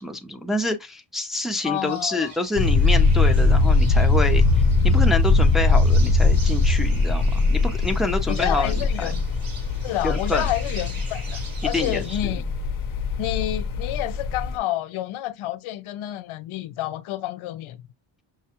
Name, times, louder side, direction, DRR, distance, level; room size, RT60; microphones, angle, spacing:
voice 1, 0.0-4.4 4.8-9.1 10.0-10.5 11.7-12.3, left 2 dB, ahead, 0.5 m, -27 dB
voice 2, 1.6-2.3 8.3-9.2 9.8-12.5 13.2-17.8, left 13 dB, 80° left, 0.6 m, -29 dB
sound 1, 1.8-12.2, right 3 dB, 45° right, 1.4 m, -43 dB
sound 2, 2.6-14.6, left 3 dB, 45° left, 0.7 m, -20 dB
5.8 x 2.2 x 2.9 m
cardioid pair, 115°, 48 cm